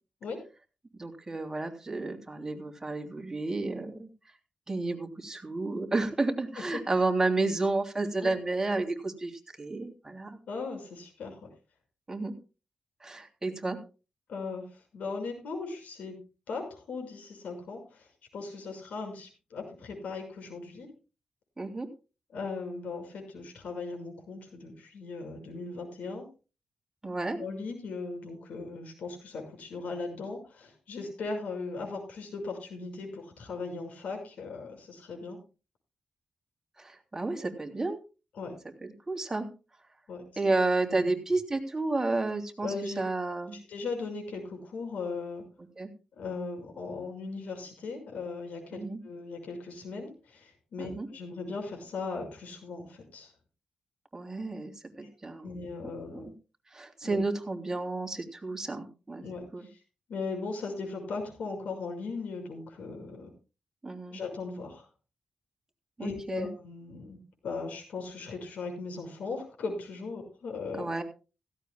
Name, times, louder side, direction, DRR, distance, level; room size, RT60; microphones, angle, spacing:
voice 1, 1.0-4.1 4.7-10.4 12.1-12.4 13.0-13.8 21.6-21.9 27.0-27.4 36.8-38.0 38.8-39.5 40.4-43.6 45.8-45.9 48.7-49.0 50.8-51.1 54.1-54.7 55.0-55.5 56.1-56.3 56.7-59.2 59.5-59.7 63.8-64.2 66.0-66.5 70.7-71.0, right 2 dB, 20° right, 3 dB, 3.2 m, -31 dB
voice 2, 10.5-11.5 14.3-18.1 18.3-20.9 22.3-26.3 27.4-35.4 38.3-38.6 40.1-40.6 40.8-41.1 42.6-43.0 43.5-45.5 46.2-53.3 55.4-56.3 57.0-57.2 59.2-59.8 60.1-63.3 64.1-64.9 66.0-70.8, left 4 dB, 85° left, 4 dB, 6.0 m, -38 dB
16.5 x 15.5 x 2.3 m, 0.32 s
cardioid pair, 90°, 2 cm